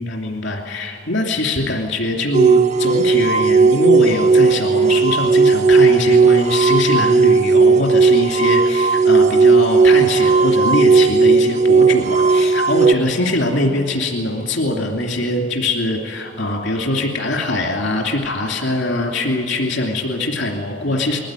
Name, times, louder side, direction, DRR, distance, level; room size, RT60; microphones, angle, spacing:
voice 1, 0.0-21.2, left 2 dB, 75° left, 1 dB, 2.8 m, -22 dB
sound 1, 2.3-12.9, right 4 dB, 40° right, 0.4 m, -14 dB
21.0 x 15.0 x 9.1 m, 3.0 s
head